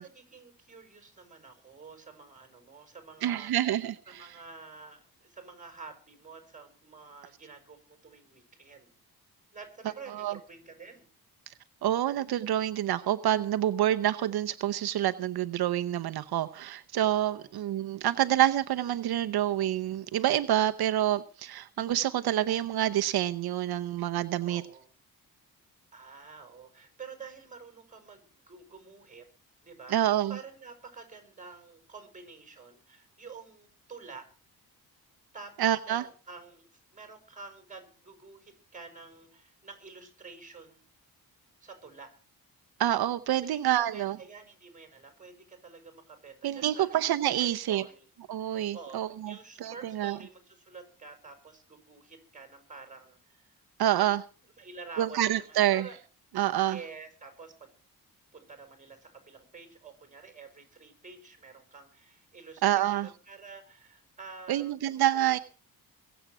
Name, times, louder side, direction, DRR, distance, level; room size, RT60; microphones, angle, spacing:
voice 1, 0.0-3.5 4.1-8.9 9.5-11.1 17.2-17.5 24.4-24.9 25.9-29.3 29.6-34.3 35.3-40.8 41.6-42.1 43.4-48.1 48.4-53.6 54.0-54.2 54.6-56.0 56.6-57.7 58.3-64.7, right 4 dB, 20° right, 5.6 m, -49 dB
voice 2, 3.2-4.3 10.1-10.4 11.5-11.6 11.8-24.6 29.9-30.4 35.6-36.0 42.8-44.2 46.4-47.8 48.3-49.3 49.6-50.2 53.8-54.2 55.0-55.9 56.3-56.8 62.6-63.1 64.5-65.4, right 12 dB, 80° right, 0.8 m, -27 dB
22.0 x 8.0 x 6.0 m
cardioid pair, 125°, 38 cm